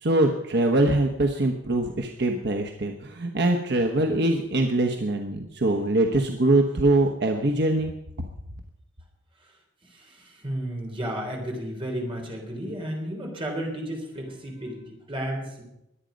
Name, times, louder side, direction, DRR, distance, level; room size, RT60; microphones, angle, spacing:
voice 1, 0.0-7.9, right 2 dB, 60° right, 3 dB, 1.2 m, -23 dB
voice 2, 9.8-15.6, right 1 dB, 30° right, 1 dB, 3.8 m, -33 dB
21.5 x 9.1 x 5.3 m, 0.84 s
head